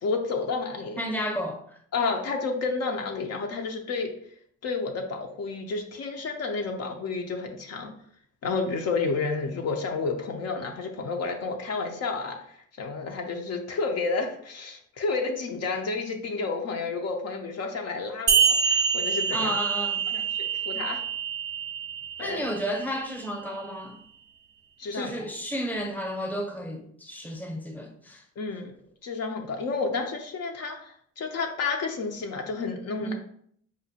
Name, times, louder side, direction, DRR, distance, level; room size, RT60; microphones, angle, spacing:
voice 1, 0.0-1.0 1.9-4.1 4.6-7.9 8.4-19.5 20.1-21.0 22.2-22.4 24.8-25.2 28.4-28.7 29.0-33.1, left 4 dB, 55° left, 3 dB, 0.6 m, -31 dB
voice 2, 1.0-1.8 19.3-20.1 22.2-24.0 24.9-28.2 33.0-33.1, equal, 5° left, 2 dB, 0.7 m, -32 dB
sound 1, 18.3-23.3, right 6 dB, 35° right, 0.4 m, -26 dB
5.0 x 2.1 x 2.7 m, 0.64 s
cardioid pair, 90°, 30 cm